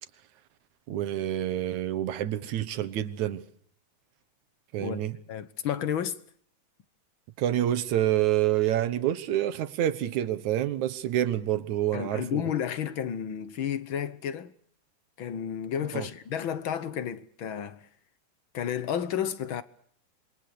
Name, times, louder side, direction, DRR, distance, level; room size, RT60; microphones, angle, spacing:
voice 1, 0.9-3.4 4.7-5.2 7.4-12.4 15.9-16.1, right 12 dB, 75° right, 2.7 m, -27 dB
voice 2, 4.8-6.2 11.9-14.5 15.2-17.9 18.5-19.6, left 9 dB, 55° left, 1.6 m, -32 dB
27.0 x 22.0 x 6.7 m
omnidirectional pair, 3.4 m